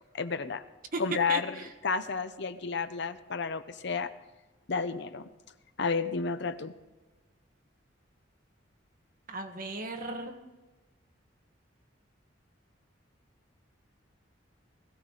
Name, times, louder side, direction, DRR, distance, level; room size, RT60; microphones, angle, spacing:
voice 1, 0.1-0.6 1.0-1.6 1.8-4.1 4.7-5.3 5.8-6.7, left 5 dB, 60° left, 11 dB, 0.7 m, -31 dB
voice 2, 1.3-1.7 9.3-10.4, right 3 dB, 45° right, 3 dB, 1.5 m, -36 dB
20.0 x 14.5 x 4.0 m, 1.2 s
head